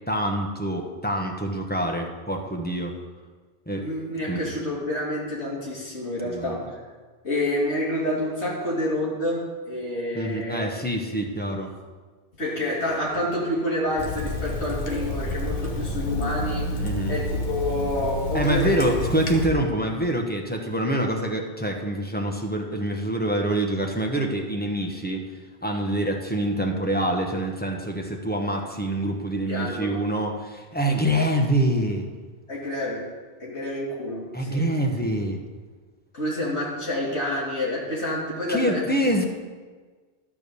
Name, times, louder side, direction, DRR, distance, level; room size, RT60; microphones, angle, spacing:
voice 1, 0.1-2.9 3.7-3.9 4.3-4.4 6.2-6.6 10.1-11.7 16.8-17.2 18.3-25.3 25.6-32.1 34.3-35.4 38.5-39.2, right 1 dB, 10° left, 1 dB, 1.0 m, -25 dB
voice 2, 3.8-6.8 7.2-10.6 12.4-18.8 29.5-30.0 30.9-31.0 32.5-33.1 33.4-34.7 36.1-39.0, left 1 dB, 80° left, -5 dB, 2.9 m, -28 dB
Water tap faucet / Sink (filling or washing), 14.0-19.5, left 1 dB, 45° left, 1.2 m, -29 dB
12.5 x 4.8 x 6.8 m, 1.4 s
omnidirectional pair, 1.1 m